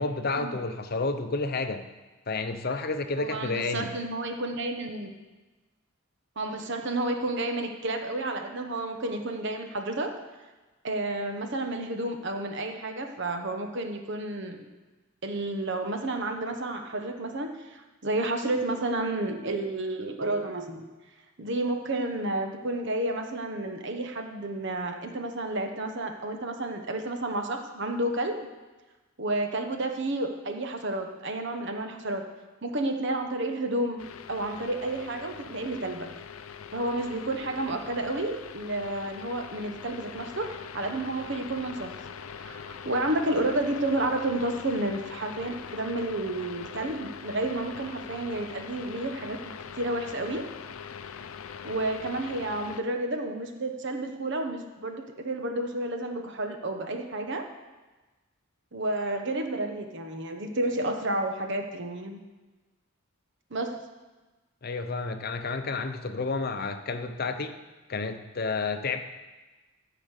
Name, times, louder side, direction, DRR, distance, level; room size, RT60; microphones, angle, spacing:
voice 1, 0.0-1.9 2.3-3.9 64.6-67.6 67.9-69.0, left 3 dB, 45° left, 8 dB, 0.7 m, -30 dB
voice 2, 3.2-5.1 6.4-10.1 10.8-14.7 15.2-20.9 21.4-28.5 29.2-32.3 32.6-36.1 36.7-41.9 42.4-50.5 51.6-57.5 58.7-62.2 63.5-63.8, right 2 dB, 55° right, 5 dB, 1.1 m, -31 dB
sound 1, 34.0-52.8, left 7 dB, 80° left, 0.6 m, -42 dB
12.5 x 5.1 x 8.2 m, 1.2 s
head